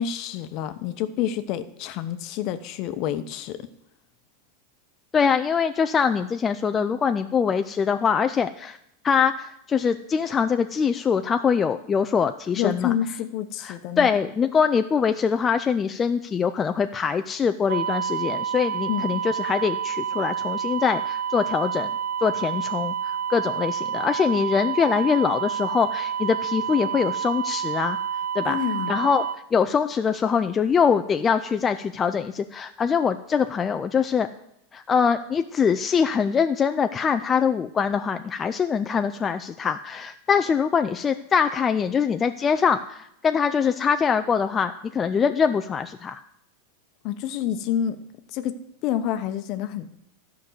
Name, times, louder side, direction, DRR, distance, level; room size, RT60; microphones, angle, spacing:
voice 1, 0.0-3.6 12.6-14.1 18.9-19.2 28.5-29.0 47.0-48.0 48.3-48.5 48.8-50.0, left 10 dB, 50° left, 10 dB, 0.9 m, -28 dB
voice 2, 5.1-8.8 9.0-12.9 13.6-21.9 22.2-28.0 28.3-28.6 28.9-29.3 29.5-34.3 34.7-46.2, left 6 dB, 25° left, 8 dB, 0.4 m, -23 dB
sound 1, 17.7-29.4, right 8 dB, 80° right, 0.7 m, -29 dB
12.0 x 5.3 x 8.0 m, 0.79 s
hypercardioid pair, 120°, 0 cm